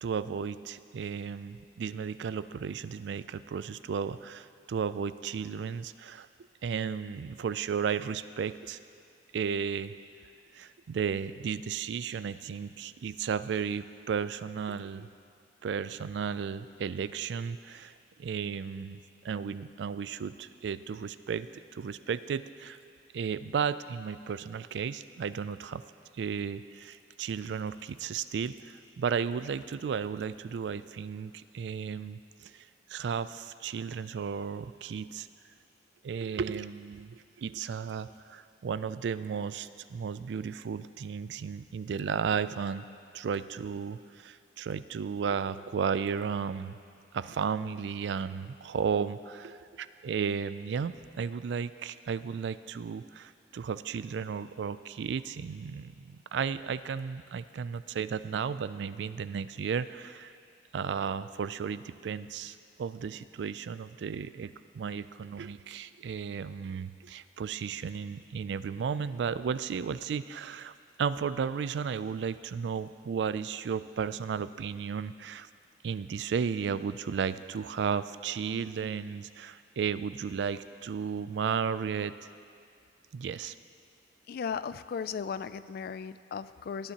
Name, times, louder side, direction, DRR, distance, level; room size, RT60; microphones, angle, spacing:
voice 1, 0.0-6.3 6.6-8.8 9.3-9.9 10.5-15.1 15.6-17.9 18.2-21.5 21.7-22.8 23.1-25.8 26.1-35.3 36.0-42.9 43.1-46.8 47.1-60.3 60.7-64.5 64.7-75.5 75.8-82.1 83.1-83.5, right 6 dB, 70° right, 14 dB, 0.3 m, -34 dB
voice 2, 84.3-86.9, left 6 dB, 55° left, 15 dB, 0.3 m, -36 dB
17.5 x 9.8 x 2.9 m, 2.3 s
head